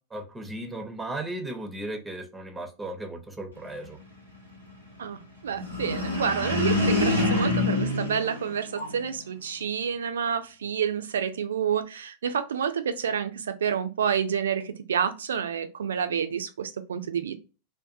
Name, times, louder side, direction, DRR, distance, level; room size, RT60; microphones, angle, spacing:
voice 1, 0.1-4.0, right 1 dB, 10° right, 0.5 m, -36 dB
voice 2, 5.0-17.3, right 7 dB, 65° right, 0.3 m, -29 dB
sound 1, 5.6-9.2, left 2 dB, 90° left, 1.0 m, -26 dB
2.5 x 2.1 x 2.3 m
figure-of-eight pair, 90°, 0 cm